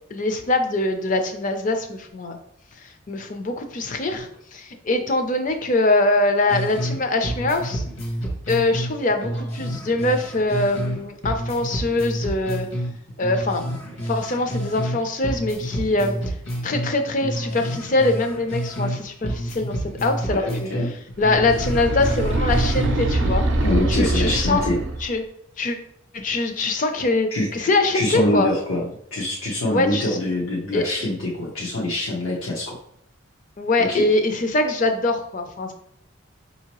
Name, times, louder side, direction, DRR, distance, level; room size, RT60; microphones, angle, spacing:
voice 1, 0.1-2.4 3.1-7.8 8.5-12.7 13.2-13.6 14.0-16.1 16.6-20.7 21.2-23.4 24.0-24.6 25.0-25.2 25.6-25.8 26.1-28.5 29.7-30.1 30.7-30.8 33.6-35.7, left 2 dB, 40° left, 6 dB, 0.5 m, -23 dB
sound 1, 6.5-7.0 7.2-11.0 11.2-15.0 15.2-19.0 19.2-23.0 23.2-23.4, equal, 70° left, 1.2 m, -29 dB
voice 2, 20.3-20.9 23.6-24.8 27.3-27.7 27.9-32.8 33.8-34.0, left 1 dB, 90° left, -4 dB, 0.8 m, -25 dB
sound 2, 21.2-25.1, right 2 dB, 60° right, 0.5 m, -23 dB
5.1 x 2.8 x 3.0 m, 0.69 s
head